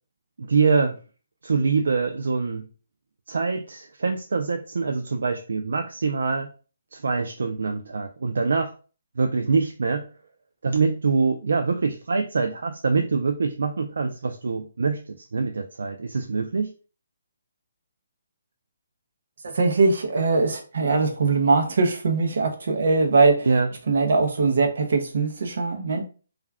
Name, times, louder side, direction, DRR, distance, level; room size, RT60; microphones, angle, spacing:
voice 1, 0.4-1.0 1.4-2.6 3.3-6.5 6.9-8.7 9.2-10.0 10.6-16.7 23.5-23.7, right 4 dB, 80° right, 6 dB, 0.3 m, -24 dB
voice 2, 19.4-23.6 23.9-26.0, right 3 dB, 60° right, 4 dB, 0.7 m, -21 dB
2.4 x 2.2 x 3.3 m, 0.37 s
hypercardioid pair, 170°, 0 cm